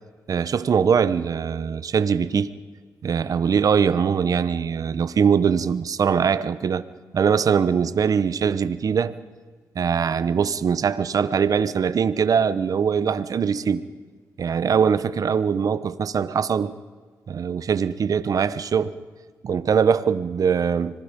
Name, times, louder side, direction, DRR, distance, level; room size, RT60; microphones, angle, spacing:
voice 1, 0.3-2.5 3.0-6.8 7.1-9.1 9.7-13.8 14.4-16.7 17.3-18.9 19.4-21.0, right 6 dB, 55° right, 0.9 m, -22 dB
25.5 x 20.0 x 5.3 m
cardioid pair, 70°, 7 cm